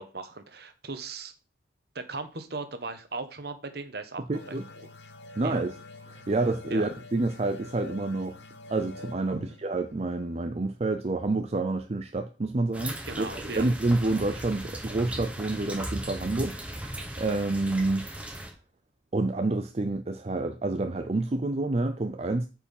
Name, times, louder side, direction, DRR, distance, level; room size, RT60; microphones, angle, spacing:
voice 1, 0.0-1.3 1.9-4.4 5.4-5.6 6.7-6.8 9.3-9.5 13.1-13.6, right 3 dB, 55° right, 1.2 m, -37 dB
sound 1, 4.3-11.6, left 3 dB, 65° left, 1.0 m, -47 dB
voice 2, 4.3-4.7 5.4-5.7 6.1-8.4 8.7-18.1 19.1-22.5, right 2 dB, 35° right, 0.5 m, -28 dB
sound 2, 12.7-18.5, right 1 dB, 5° right, 1.3 m, -37 dB
8.8 x 4.7 x 5.4 m
head